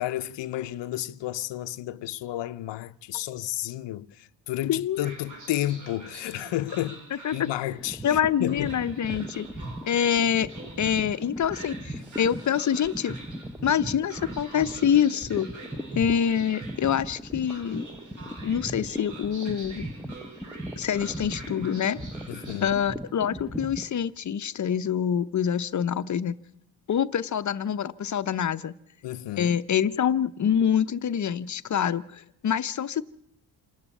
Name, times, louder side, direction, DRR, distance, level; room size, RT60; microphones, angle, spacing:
voice 1, 0.0-7.0 7.3-8.7 22.3-22.8 29.0-29.5, left 14 dB, 90° left, 0.8 m, -32 dB
voice 2, 4.6-5.1 7.2-7.5 8.0-9.5 9.9-10.5 10.8-13.1 13.6-15.5 15.9-17.8 18.4-19.8 20.8-22.0 22.6-26.4 26.9-28.7 29.4-33.0, left 8 dB, 45° left, 0.7 m, -26 dB
Train, 4.9-22.7, right 2 dB, 45° right, 5.8 m, -46 dB
sound 1, 7.8-23.9, equal, ahead, 0.9 m, -38 dB
27.5 x 12.5 x 8.3 m
cardioid pair, 135°, 42 cm